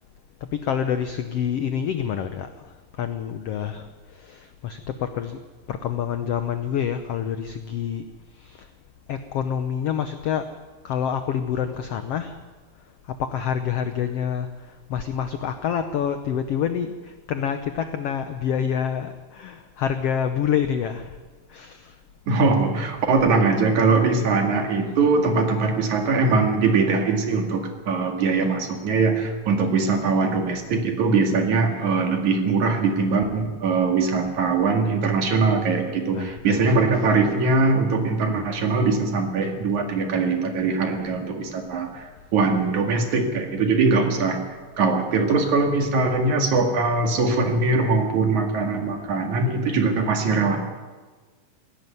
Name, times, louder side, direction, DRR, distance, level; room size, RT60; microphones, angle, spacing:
voice 1, 0.5-2.6 3.0-3.9 4.1-5.4 5.7-8.0 8.4-8.7 9.1-10.4 10.8-12.4 13.2-14.5 14.9-21.2 21.5-21.9 28.3-28.4 36.1-36.9, left 8 dB, 85° left, 8 dB, 1.3 m, -27 dB
voice 2, 22.3-44.4 44.8-50.6, right 4 dB, 60° right, 3 dB, 3.4 m, -21 dB
17.0 x 16.0 x 9.5 m, 1.3 s
omnidirectional pair, 4.0 m